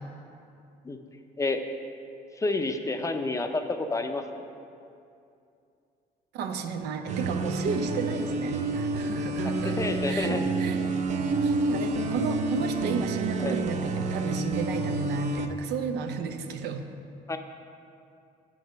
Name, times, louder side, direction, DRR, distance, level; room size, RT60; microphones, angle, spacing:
voice 1, 2.4-4.4 9.4-10.4 13.4-13.6 17.3-17.4, left 2 dB, 20° left, 6 dB, 0.5 m, -29 dB
voice 2, 6.3-9.8 10.0-10.8 11.4-16.8, right 5 dB, 85° right, 6 dB, 0.7 m, -33 dB
sound 1, 7.1-15.5, right 3 dB, 45° right, 0.5 m, -29 dB
8.2 x 6.2 x 5.2 m, 2.6 s
cardioid pair, 110°, 17 cm